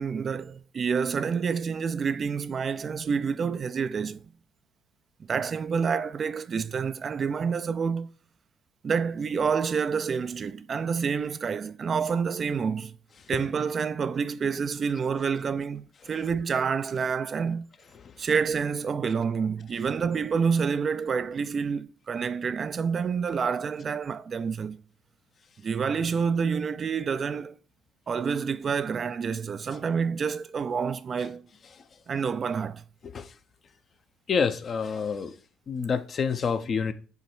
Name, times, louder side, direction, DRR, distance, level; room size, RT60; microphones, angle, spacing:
voice 1, 0.0-4.2 5.3-8.1 8.8-13.0 13.3-17.7 18.2-24.8 25.6-27.5 28.1-31.5 32.1-32.8, right 6 dB, 40° right, 0.4 m, -28 dB
voice 2, 34.3-35.3 35.7-36.9, left 6 dB, 45° left, 0.7 m, -27 dB
8.0 x 3.1 x 4.4 m
figure-of-eight pair, 50°, 0 cm